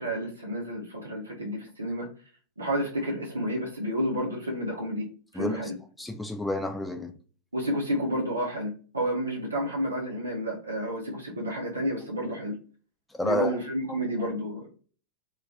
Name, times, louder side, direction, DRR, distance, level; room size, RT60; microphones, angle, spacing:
voice 1, 0.0-2.1 2.6-5.0 5.3-5.7 7.5-12.5 13.2-14.7, equal, 75° right, 0.5 m, -30 dB
voice 2, 5.3-5.7 6.0-7.1 13.1-13.6 13.9-14.0, left 1 dB, 5° left, 0.4 m, -30 dB
2.2 x 2.2 x 2.6 m
figure-of-eight pair, 90°, 0 cm